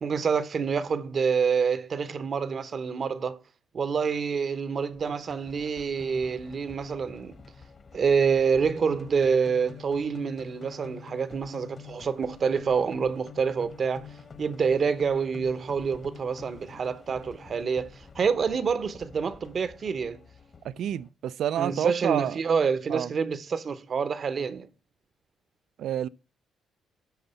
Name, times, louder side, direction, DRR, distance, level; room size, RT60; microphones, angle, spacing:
voice 1, 0.0-3.4 3.7-7.4 7.9-14.1 14.4-20.2 21.6-24.7, right 6 dB, 50° right, 0.8 m, -27 dB
sound 1, 4.9-21.1, left 5 dB, 40° left, 1.2 m, -48 dB
voice 2, 20.6-22.4 22.9-23.1 25.8-26.1, right 10 dB, 75° right, 0.4 m, -29 dB
10.5 x 3.9 x 5.5 m
cardioid pair, 90°, 0 cm